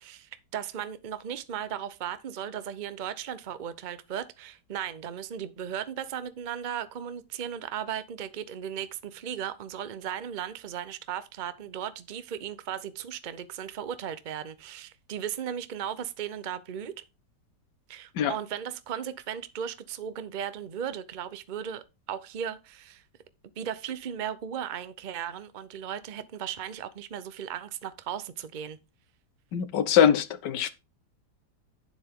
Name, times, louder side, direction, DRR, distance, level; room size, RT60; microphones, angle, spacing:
voice 1, 0.0-17.0 17.9-23.0 23.6-28.8, right 9 dB, 40° right, 0.6 m, -36 dB
voice 2, 29.5-30.7, left 9 dB, 80° left, 1.6 m, -22 dB
9.8 x 7.3 x 3.7 m
omnidirectional pair, 1.9 m